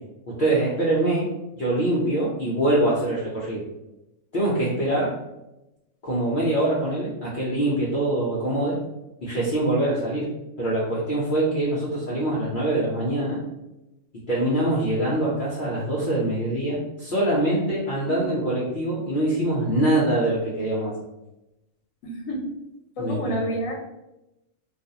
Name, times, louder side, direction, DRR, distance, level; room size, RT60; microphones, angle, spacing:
voice 1, 0.4-1.3 1.6-3.6 4.3-5.1 6.0-8.8 9.2-10.3 10.6-13.4 14.1-21.0 23.0-23.5, right 1 dB, 55° left, -7 dB, 0.6 m, -24 dB
voice 2, 22.0-22.5 23.0-23.7, equal, 80° left, 1 dB, 1.0 m, -29 dB
2.4 x 2.3 x 2.7 m, 0.94 s
omnidirectional pair, 1.3 m